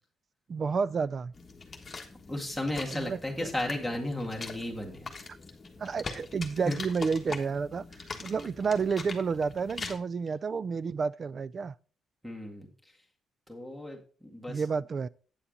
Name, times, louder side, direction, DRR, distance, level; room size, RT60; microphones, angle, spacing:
voice 1, 0.5-1.3 2.9-3.5 5.8-11.8 14.5-15.1, right 5 dB, 40° right, 0.3 m, -30 dB
sound 1, 1.3-10.0, left 4 dB, 30° left, 1.3 m, -42 dB
voice 2, 2.3-5.1 6.7-6.8 12.2-12.7 13.5-14.6, left 1 dB, ahead, 2.0 m, -34 dB
8.6 x 7.1 x 3.9 m
cardioid pair, 120°, 0 cm